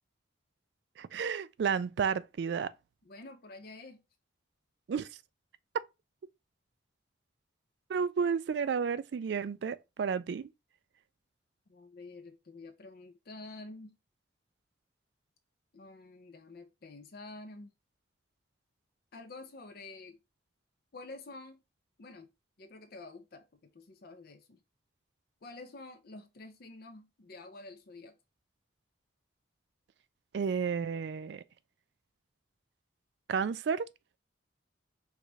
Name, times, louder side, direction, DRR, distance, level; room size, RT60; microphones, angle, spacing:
voice 1, 1.0-2.7 4.9-5.1 7.9-10.5 30.3-31.4 33.3-33.9, right 6 dB, 60° right, 0.3 m, -32 dB
voice 2, 3.0-4.0 11.7-14.0 15.7-17.7 19.1-20.2 20.9-21.6 22.0-22.3 22.6-24.6 25.4-28.2, left 2 dB, 50° left, 0.5 m, -49 dB
4.7 x 2.4 x 3.9 m
head